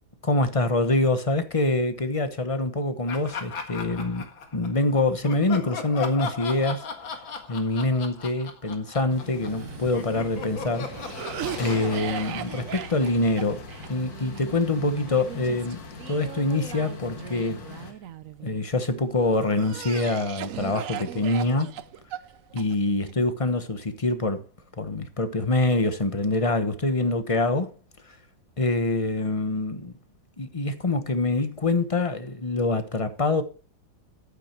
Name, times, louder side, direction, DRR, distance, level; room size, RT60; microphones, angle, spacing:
voice 1, 0.2-6.8 7.5-10.9 11.6-13.6 13.9-17.6 18.4-21.8 22.5-24.4 24.8-27.7 28.6-29.9 30.4-33.4, left 2 dB, 25° left, 0.8 m, -25 dB
Laughter, 3.1-4.8 5.2-9.6 9.9-13.5, left 5 dB, 90° left, 2.5 m, -37 dB
sound 1, 9.1-17.9, left 4 dB, 55° left, 1.9 m, -41 dB
Cough, 9.4-18.6 19.2-23.1, right 11 dB, 70° right, 0.8 m, -39 dB
12.0 x 9.0 x 4.5 m
omnidirectional pair, 2.1 m